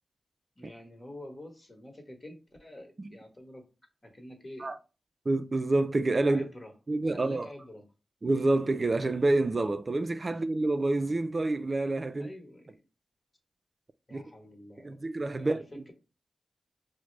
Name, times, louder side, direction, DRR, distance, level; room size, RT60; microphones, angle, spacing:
voice 1, 0.5-3.7 4.0-4.7 6.2-6.7 7.1-7.8 10.3-10.4 12.1-12.8 14.1-15.0 15.4-15.9, left 1 dB, 35° left, 1.1 m, -47 dB
voice 2, 5.3-6.4 6.9-7.5 8.2-12.3 14.1-14.2 14.8-15.6, right 2 dB, 45° right, 0.3 m, -27 dB
4.8 x 2.1 x 3.2 m
cardioid pair, 50°, 0 cm